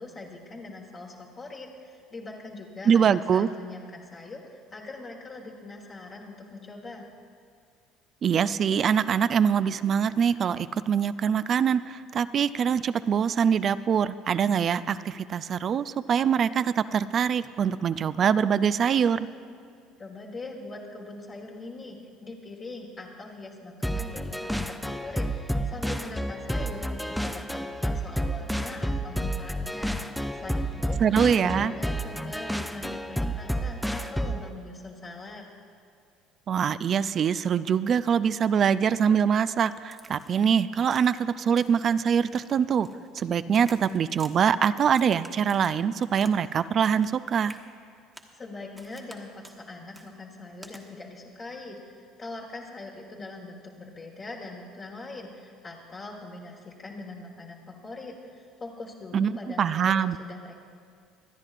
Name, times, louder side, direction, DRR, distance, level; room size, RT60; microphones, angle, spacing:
voice 1, 0.0-7.1 20.0-31.0 31.4-35.4 48.4-60.5, left 2 dB, 35° left, -2 dB, 1.4 m, -42 dB
voice 2, 2.9-3.5 8.2-19.3 31.0-31.7 36.5-42.9 43.2-47.6 59.1-59.3 59.6-60.2, right 7 dB, 45° right, 14 dB, 0.3 m, -24 dB
sound 1, 23.8-34.5, equal, ahead, 0.6 m, -30 dB
Crack, 39.9-40.4 40.9-41.2 41.5-41.9 42.2-43.3 43.5-44.3 44.9-46.4 46.6-47.2 47.5-47.6 48.1-48.4 48.8-49.2 49.4-49.6 49.9-50.1 50.6-50.8, right 2 dB, 15° right, 1.2 m, -50 dB
25.0 x 9.7 x 2.5 m, 2.4 s
supercardioid pair, 85°, 0 cm